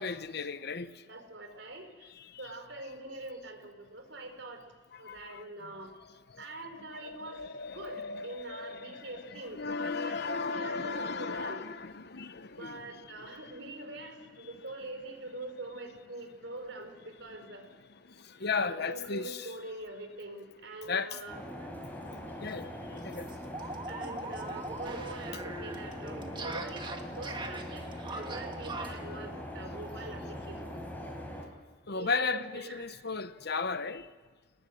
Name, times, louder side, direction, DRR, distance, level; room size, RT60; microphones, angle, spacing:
voice 1, 0.0-0.9 5.0-5.4 7.0-9.1 9.5-13.4 18.4-19.5 20.9-21.2 22.4-23.3 31.9-34.0, left 4 dB, 60° left, 1.0 m, -35 dB
voice 2, 1.0-4.6 5.0-5.9 6.4-7.4 7.7-11.7 12.5-17.6 18.5-21.7 23.9-30.8 31.9-33.1, right 2 dB, 70° right, 4.8 m, -44 dB
sound 1, 21.3-31.4, left 1 dB, 10° left, 4.8 m, -42 dB
sound 2, 22.1-22.2 22.5-22.6 22.9-29.1, right 2 dB, 25° right, 1.8 m, -41 dB
29.5 x 20.0 x 6.5 m
head